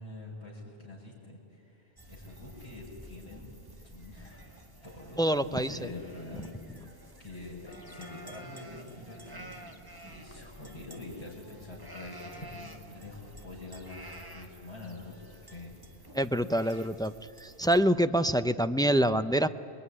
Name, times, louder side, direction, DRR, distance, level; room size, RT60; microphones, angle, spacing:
voice 1, 0.0-3.5 3.8-4.4 4.8-6.9 7.2-9.5 10.1-15.2 15.4-16.1, left 2 dB, 25° left, -8 dB, 5.6 m, -45 dB
sound 1, 2.0-17.8, right 1 dB, 20° right, 1.7 m, -50 dB
voice 2, 5.2-5.7 16.1-17.1 17.4-19.5, right 1 dB, 5° left, 10 dB, 0.3 m, -25 dB
28.0 x 21.5 x 9.8 m, 2.5 s
omnidirectional pair, 1.1 m